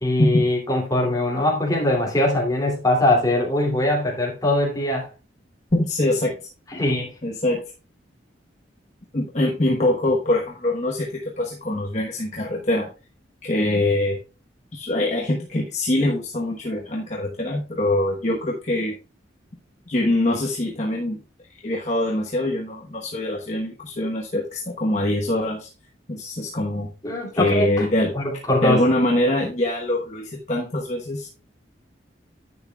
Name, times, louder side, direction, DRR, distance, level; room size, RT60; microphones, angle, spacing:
voice 1, 0.0-5.1 6.7-7.1 27.0-27.8 28.1-28.8, left 1 dB, 20° left, 2.7 m, -21 dB
voice 2, 5.7-6.4 7.2-7.7 9.1-12.9 13.4-14.2 14.7-19.0 19.9-21.2 21.6-25.7 26.1-26.9 27.3-28.2 28.6-31.3, left 1 dB, 40° left, 1.1 m, -23 dB
10.5 x 8.4 x 2.3 m
head